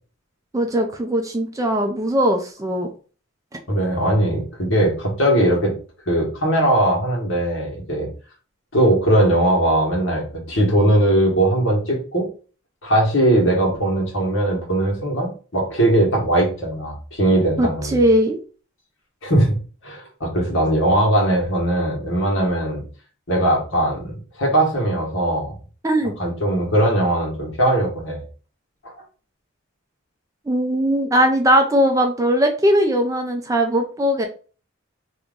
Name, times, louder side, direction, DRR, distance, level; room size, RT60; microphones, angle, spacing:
voice 1, 0.5-2.9 17.6-18.4 25.8-26.1 30.5-34.3, equal, 15° right, 4 dB, 0.4 m, -19 dB
voice 2, 3.7-5.7 6.1-8.1 8.7-12.3 12.8-18.0 19.2-19.5 19.8-22.8 23.3-25.6 26.2-28.2 28.8-28.9, right 1 dB, 65° left, -1 dB, 1.5 m, -19 dB
2.9 x 2.5 x 3.5 m, 0.37 s
head